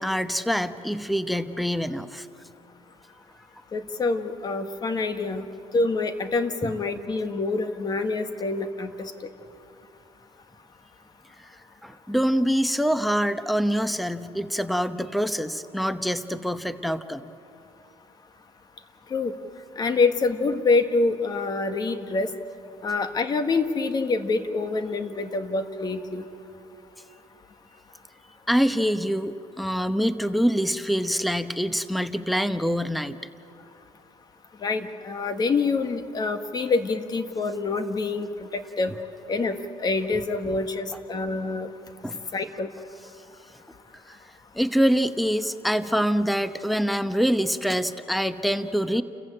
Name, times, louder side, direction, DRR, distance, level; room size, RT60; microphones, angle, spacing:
voice 1, 0.0-2.3 6.6-6.8 11.8-17.2 28.5-33.2 38.9-39.0 40.2-40.3 42.0-42.2 44.1-44.2 44.5-49.0, equal, ahead, 11 dB, 0.9 m, -25 dB
voice 2, 3.7-5.4 5.7-9.1 19.1-19.3 19.8-22.3 22.8-26.2 34.6-38.9 39.3-41.7 42.3-42.7, left 3 dB, 40° left, 8 dB, 1.7 m, -26 dB
29.5 x 15.0 x 8.8 m, 2.8 s
cardioid pair, 95°, 11 cm